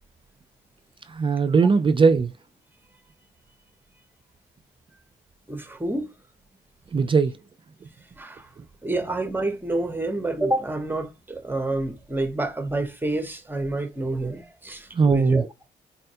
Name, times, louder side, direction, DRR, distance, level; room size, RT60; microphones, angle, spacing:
voice 1, 1.1-2.3 6.9-7.3 14.9-15.4, right 5 dB, 25° right, 0.3 m, -19 dB
voice 2, 5.5-6.1 8.2-8.5 8.8-15.5, right 2 dB, 10° right, 0.7 m, -28 dB
4.1 x 2.2 x 2.7 m
cardioid pair, 90°, 20 cm